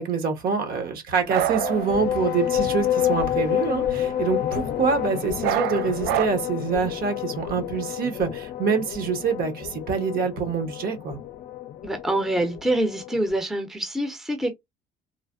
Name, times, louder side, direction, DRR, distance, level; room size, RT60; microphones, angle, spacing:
voice 1, 0.0-11.2, right 5 dB, 60° right, 1.0 m, -26 dB
sound 1, 1.1-5.1 5.4-6.3, right 12 dB, 80° right, 0.4 m, -29 dB
sound 2, 1.5-13.4, left 11 dB, 60° left, 0.5 m, -29 dB
voice 2, 11.8-14.5, right 1 dB, ahead, 0.6 m, -25 dB
3.2 x 2.1 x 2.4 m
cardioid pair, 110°, 17 cm